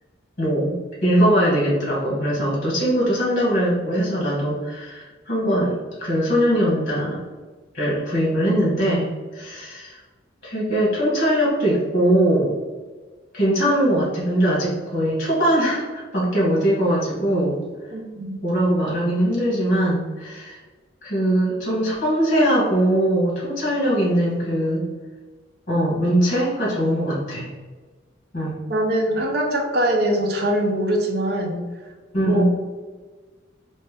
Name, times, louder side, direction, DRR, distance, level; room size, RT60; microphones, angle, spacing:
voice 1, 0.4-0.7 1.0-7.2 7.7-10.0 10.4-12.5 13.3-17.6 18.4-20.6 21.0-24.8 25.7-27.5 28.3-28.6 32.1-32.5, equal, 50° left, -5 dB, 1.4 m, -21 dB
voice 2, 17.9-18.4 28.7-31.6 32.2-32.5, right 1 dB, 60° right, 1 dB, 0.7 m, -22 dB
3.3 x 2.8 x 3.4 m, 1.4 s
head